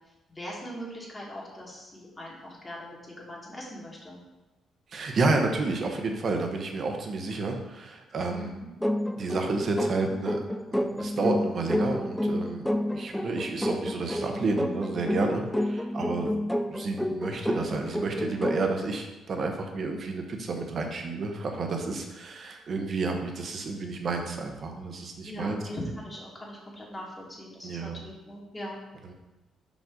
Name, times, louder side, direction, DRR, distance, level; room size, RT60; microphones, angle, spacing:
voice 1, 0.3-4.2 8.3-8.7 25.2-28.8, equal, 25° left, -4 dB, 1.9 m, -40 dB
voice 2, 4.9-8.5 9.1-10.4 10.7-25.6 27.6-28.0, right 3 dB, 50° right, 4 dB, 1.0 m, -30 dB
sound 1, 8.8-18.8, left 1 dB, 5° left, 0.3 m, -30 dB
5.4 x 5.1 x 3.8 m, 1.1 s
cardioid pair, 90°, 0 cm